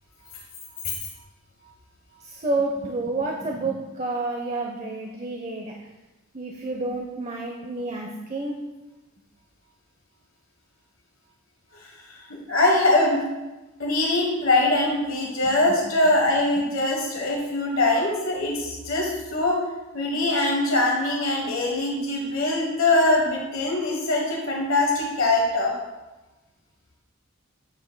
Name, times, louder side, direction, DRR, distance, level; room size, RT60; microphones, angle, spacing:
voice 1, 2.2-5.7 6.3-8.6 15.4-15.5, right 2 dB, 30° right, 1 dB, 0.7 m, -29 dB
voice 2, 12.5-13.3 13.8-19.6 19.9-25.7, left 2 dB, 75° left, -2 dB, 1.3 m, -22 dB
9.6 x 7.5 x 2.2 m, 1.1 s
head